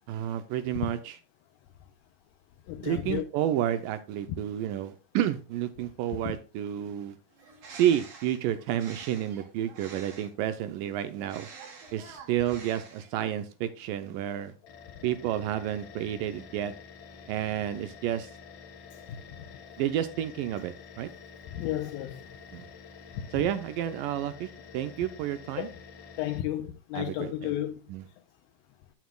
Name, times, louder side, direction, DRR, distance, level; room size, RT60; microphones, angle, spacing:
voice 1, 0.1-1.2 2.8-7.2 7.7-11.5 11.9-14.5 15.0-16.7 17.3-18.3 19.8-21.1 22.5-22.6 23.3-24.5 24.7-25.7 26.9-27.5 27.9-28.0, right 11 dB, 85° right, 2.0 m, -30 dB
voice 2, 2.7-3.2 6.2-6.3 21.5-22.3 25.6-25.7 26.2-27.8, left 13 dB, 80° left, 2.3 m, -32 dB
Bird, 7.3-10.5 11.2-13.3, right 5 dB, 60° right, 3.2 m, -48 dB
sound 1, 14.6-26.4, left 6 dB, 60° left, 2.1 m, -49 dB
9.4 x 9.0 x 2.3 m
omnidirectional pair, 4.4 m